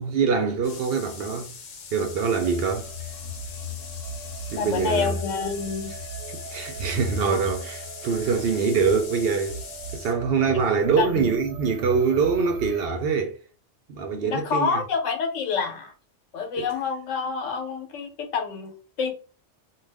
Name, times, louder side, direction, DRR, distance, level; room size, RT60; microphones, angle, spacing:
voice 1, 0.0-1.5 1.9-2.9 4.5-5.2 6.3-9.7 9.9-13.4 13.9-14.8 16.6-16.7, right 5 dB, 60° right, 0.7 m, -24 dB
sound 1, 0.6-10.2, left 6 dB, 60° left, 0.5 m, -41 dB
sound 2, 2.4-12.9, right 2 dB, 85° right, 1.0 m, -39 dB
voice 2, 4.6-6.0 11.0-11.2 14.2-15.9 16.3-19.1, left 5 dB, 85° left, 1.1 m, -27 dB
2.4 x 2.3 x 3.3 m
omnidirectional pair, 1.2 m